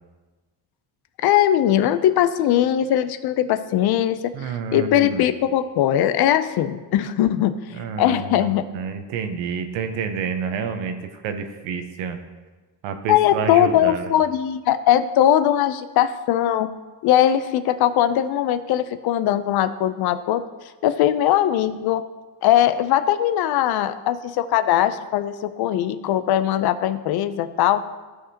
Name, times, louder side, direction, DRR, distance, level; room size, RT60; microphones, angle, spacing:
voice 1, 1.2-4.3 4.7-7.6 8.0-8.6 13.1-16.7 17.0-20.4 20.8-22.0 22.4-27.8, left 11 dB, 55° left, 12 dB, 0.6 m, -20 dB
voice 2, 4.3-5.3 7.7-12.2 12.8-14.1, right 6 dB, 75° right, 7 dB, 1.1 m, -29 dB
14.5 x 4.9 x 2.9 m, 1.3 s
cardioid pair, 115°, 45 cm